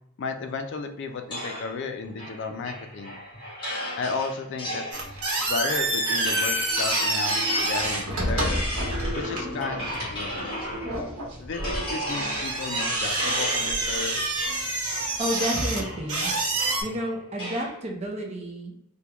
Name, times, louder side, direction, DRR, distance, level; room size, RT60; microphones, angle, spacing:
voice 1, 0.2-3.2 4.0-4.8 5.4-8.7 9.1-10.6 11.4-14.4, left 4 dB, 55° left, 6 dB, 0.3 m, -33 dB
sound 1, 1.3-11.1 11.5-17.7, equal, 25° left, 1.5 m, -34 dB
sound 2, 4.9-16.8, right 2 dB, 90° right, 1.1 m, -28 dB
voice 2, 15.2-16.3 16.8-18.8, equal, 30° right, 0 dB, 0.6 m, -30 dB
3.4 x 2.2 x 2.9 m, 0.84 s
head